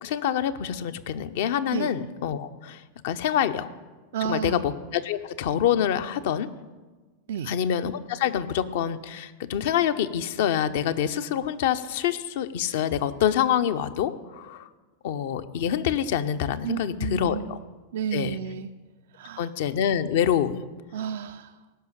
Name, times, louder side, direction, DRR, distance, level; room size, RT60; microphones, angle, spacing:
voice 1, 0.0-3.7 4.2-6.5 7.5-14.7 15.0-17.6 18.1-18.4 19.4-20.6, left 9 dB, 55° left, 11 dB, 0.7 m, -26 dB
voice 2, 4.1-4.6 7.3-7.6 16.6-17.5 17.9-18.7 19.1-19.5 20.9-21.6, right 8 dB, 60° right, 9 dB, 0.4 m, -31 dB
16.5 x 6.3 x 8.8 m, 1.3 s
figure-of-eight pair, 90°, 0 cm